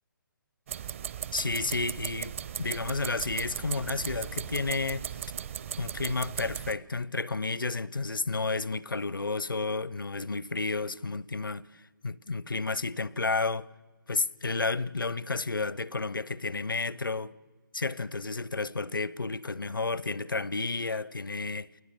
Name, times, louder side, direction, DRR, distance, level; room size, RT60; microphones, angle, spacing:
sound 1, 0.7-6.7, right 9 dB, 40° right, 0.7 m, -37 dB
voice 1, 1.3-5.1 5.8-13.7 14.1-17.3 17.7-21.7, left 3 dB, 75° left, 0.7 m, -31 dB
Thunder, 2.8-6.9, right 3 dB, 70° right, 3.1 m, -54 dB
29.5 x 21.0 x 6.6 m
figure-of-eight pair, 135°, 11 cm